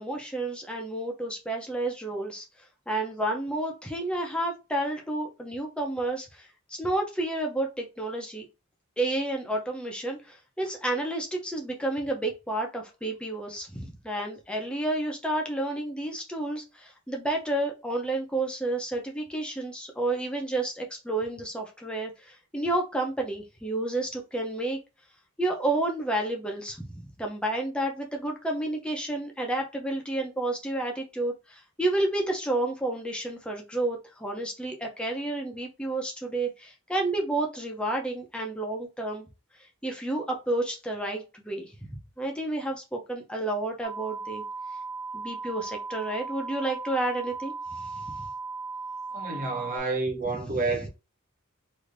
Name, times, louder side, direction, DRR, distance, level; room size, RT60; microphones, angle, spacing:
voice 1, 0.0-2.4 2.9-8.5 9.0-24.8 25.4-39.3 39.8-41.7 42.2-44.4 45.1-48.1 50.5-50.8, right 2 dB, 5° left, 0.6 m, -30 dB
sound 1, 43.8-49.8, right 4 dB, 55° right, 1.2 m, -37 dB
voice 2, 49.1-50.9, right 3 dB, 40° right, 0.9 m, -29 dB
3.2 x 2.7 x 2.6 m
head